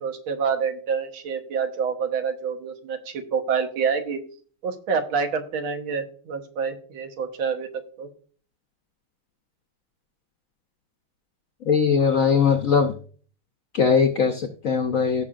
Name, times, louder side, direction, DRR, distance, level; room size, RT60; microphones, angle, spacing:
voice 1, 0.0-4.2 4.6-8.1, right 6 dB, 85° right, 6 dB, 2.0 m, -27 dB
voice 2, 11.7-12.9 13.7-15.2, left 6 dB, 65° left, 5 dB, 0.8 m, -20 dB
17.0 x 5.8 x 2.5 m, 0.44 s
omnidirectional pair, 2.2 m